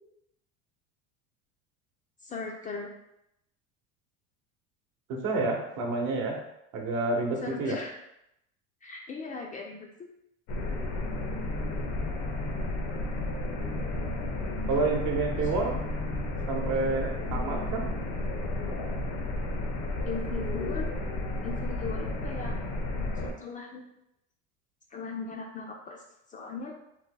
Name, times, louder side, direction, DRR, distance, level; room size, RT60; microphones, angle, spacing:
voice 1, 2.2-2.9 7.4-8.0 8.8-9.9 15.4-15.5 15.8-15.9 20.0-20.9 21.4-22.6 23.2-23.8 24.9-26.0 26.3-26.7, left 4 dB, 25° left, 0 dB, 0.3 m, -38 dB
voice 2, 5.1-6.4 6.7-7.8 14.7-15.8 16.5-17.8, right 3 dB, 60° right, 1 dB, 0.9 m, -29 dB
sound 1, 10.5-23.3, left 1 dB, 80° left, 0.8 m, -32 dB
2.8 x 2.1 x 3.6 m, 0.83 s
supercardioid pair, 110°, 35 cm